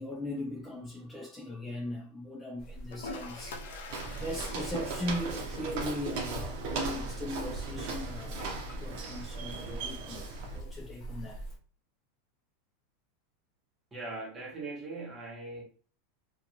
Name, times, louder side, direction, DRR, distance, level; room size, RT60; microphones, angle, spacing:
voice 1, 0.0-11.4, left 1 dB, 10° left, 0.4 m, -39 dB
sound 1, 2.6-11.6, right 2 dB, 40° left, 0.8 m, -44 dB
Toilet flush, 2.9-10.9, left 3 dB, 85° left, 0.5 m, -48 dB
Walk footsteps, 3.9-10.6, right 3 dB, 60° right, 0.7 m, -37 dB
voice 2, 13.9-15.6, right 3 dB, 20° right, 1.1 m, -40 dB
2.5 x 2.3 x 2.8 m
supercardioid pair, 130°, 0 cm